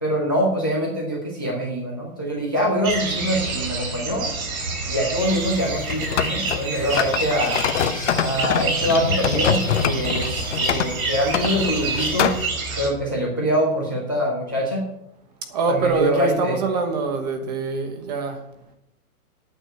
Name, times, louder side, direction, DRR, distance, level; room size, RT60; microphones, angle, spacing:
voice 1, 0.0-4.3 4.9-7.6 8.2-12.4 12.8-14.8 15.7-16.6, equal, 15° left, 0.4 m, -24 dB
sound 1, 2.8-12.9, right 3 dB, 65° right, 4.0 m, -28 dB
sound 2, 5.2-12.5, left 8 dB, 50° left, 0.8 m, -25 dB
voice 2, 15.5-18.4, right 4 dB, 25° right, 1.2 m, -24 dB
8.9 x 6.6 x 7.8 m
hypercardioid pair, 175°, 45 cm